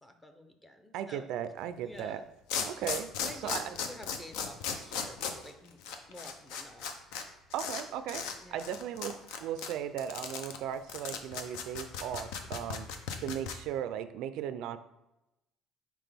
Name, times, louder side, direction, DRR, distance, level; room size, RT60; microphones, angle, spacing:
voice 1, 0.0-1.3 1.8-2.2 3.2-5.8 6.1-7.4 8.4-8.8, left 1 dB, 10° left, 6 dB, 0.5 m, -50 dB
voice 2, 0.9-2.2 2.7-3.1 3.4-3.8 7.5-8.2 8.5-12.9 13.2-14.8, right 10 dB, 65° right, 11 dB, 0.3 m, -37 dB
sound 1, 1.9-2.0 2.5-7.2 7.5-7.8 8.1-8.3 8.6-13.5, left 6 dB, 90° left, 0.7 m, -36 dB
5.9 x 4.6 x 3.4 m, 0.92 s
cardioid pair, 165°, 0 cm